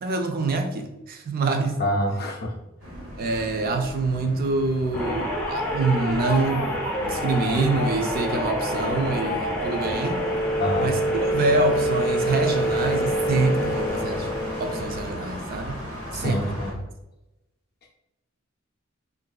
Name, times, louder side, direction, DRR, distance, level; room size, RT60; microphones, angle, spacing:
voice 1, 0.0-1.8 3.2-10.2 10.8-14.3 14.6-15.8 16.2-16.5, right 3 dB, 45° right, 5 dB, 0.4 m, -26 dB
voice 2, 1.8-2.5 10.6-10.9 16.1-16.7, left 1 dB, 50° left, 0 dB, 0.5 m, -26 dB
sound 1, 2.8-16.7, equal, 75° right, 1.0 m, -37 dB
sound 2, 4.9-15.3, equal, 5° left, 0.6 m, -27 dB
3.6 x 2.5 x 2.3 m, 0.97 s
head